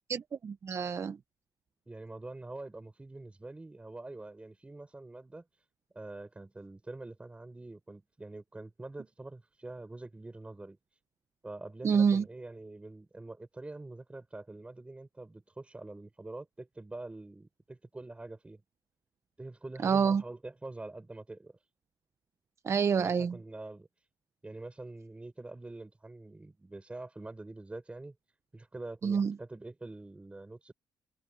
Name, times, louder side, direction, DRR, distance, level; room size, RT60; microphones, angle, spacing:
voice 1, 0.1-1.2 11.8-12.2 19.8-20.2 22.6-23.3 29.0-29.3, right 6 dB, 35° right, 0.5 m, -27 dB
voice 2, 1.9-5.4 5.9-10.8 11.4-18.6 19.4-21.6 23.0-23.9 24.4-28.1 28.5-30.7, right 2 dB, 15° right, 5.1 m, -45 dB
cardioid pair, 120°, 8 cm